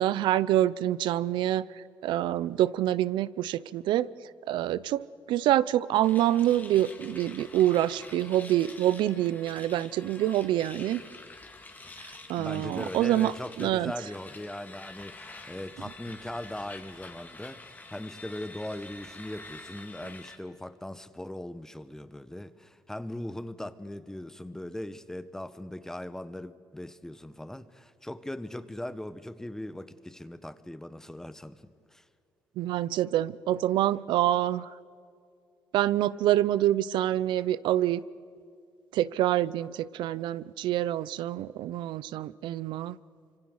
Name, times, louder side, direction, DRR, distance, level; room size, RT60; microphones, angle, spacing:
voice 1, 0.0-1.6 2.0-4.1 4.5-5.0 5.3-11.0 12.3-13.3 13.6-13.9 32.6-34.7 35.7-38.0 38.9-43.0, right 13 dB, 85° right, 0.6 m, -26 dB
sound 1, 6.0-20.4, left 3 dB, 20° left, 2.2 m, -47 dB
voice 2, 12.4-31.6 31.9-32.0, left 1 dB, 5° left, 1.0 m, -39 dB
25.5 x 25.0 x 6.5 m
cardioid pair, 120°, 8 cm